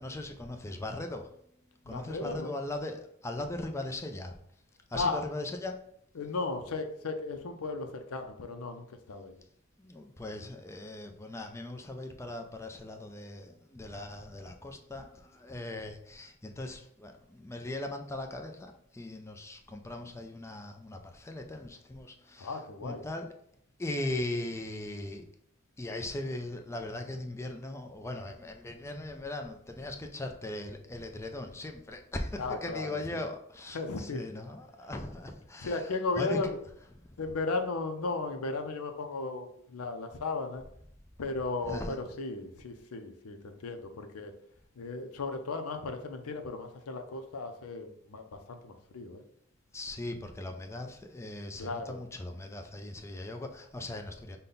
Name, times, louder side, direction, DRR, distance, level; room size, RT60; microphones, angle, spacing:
voice 1, 0.0-1.3 1.7-4.3 4.9-5.8 9.8-23.3 23.8-25.3 25.8-35.8 36.2-36.4 37.0-37.1 41.6-42.0 49.7-54.4, left 2 dB, 15° left, 4 dB, 0.4 m, -39 dB
voice 2, 1.8-2.5 4.9-5.2 6.2-9.4 22.4-23.0 32.4-33.2 33.7-34.2 35.6-36.6 37.2-40.6 41.2-44.3 44.8-49.2 51.6-52.0, left 3 dB, 80° left, 6 dB, 0.5 m, -35 dB
5.3 x 2.2 x 3.9 m, 0.69 s
head